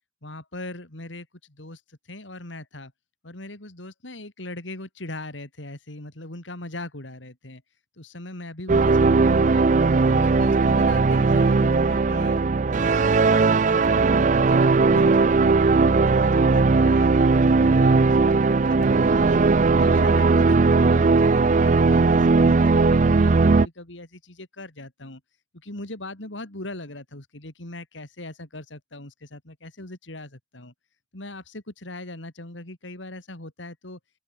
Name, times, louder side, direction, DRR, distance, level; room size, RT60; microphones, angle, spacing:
voice 1, 0.2-2.9 3.2-7.6 8.0-9.7 10.0-15.7 16.0-19.4 19.8-25.2 25.6-30.7 31.1-34.0, left 2 dB, 90° left, 3.9 m, -40 dB
sound 1, 8.7-23.7, right 4 dB, 40° right, 0.5 m, -18 dB
open air
head